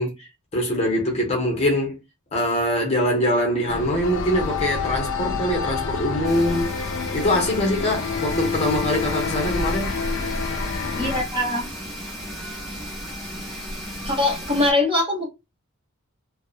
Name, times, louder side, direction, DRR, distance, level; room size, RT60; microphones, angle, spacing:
voice 1, 0.0-2.0 2.3-6.8 7.1-9.9, left 1 dB, 30° left, 0.7 m, -23 dB
sound 1, 3.7-11.2, left 5 dB, 60° left, 0.4 m, -28 dB
sound 2, 6.2-14.7, equal, ahead, 1.1 m, -34 dB
voice 2, 11.0-11.7 14.0-15.3, left 2 dB, 25° right, 0.9 m, -22 dB
2.6 x 2.0 x 2.3 m
head